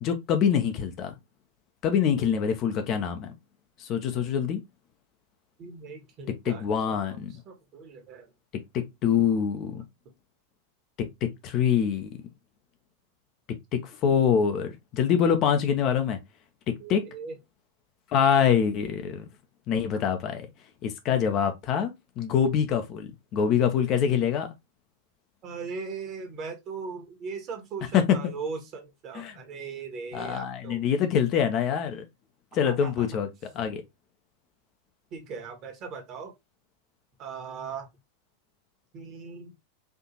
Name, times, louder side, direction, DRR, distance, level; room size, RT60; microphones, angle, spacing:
voice 1, 0.0-1.2 1.8-3.3 3.8-4.6 6.4-7.3 8.7-9.8 11.2-12.1 13.7-16.2 16.9-17.0 18.1-19.3 19.7-20.5 20.8-24.5 27.9-28.2 29.1-29.4 30.1-32.0 32.5-33.3 33.5-33.8, left 8 dB, 35° left, 0.7 m, -25 dB
voice 2, 5.6-6.6 7.5-8.3 16.8-17.3 25.4-30.9 32.6-33.1 35.1-36.3 37.2-37.9 38.9-39.5, right 5 dB, 35° right, 1.3 m, -38 dB
4.4 x 2.7 x 2.8 m
figure-of-eight pair, 90°, 0 cm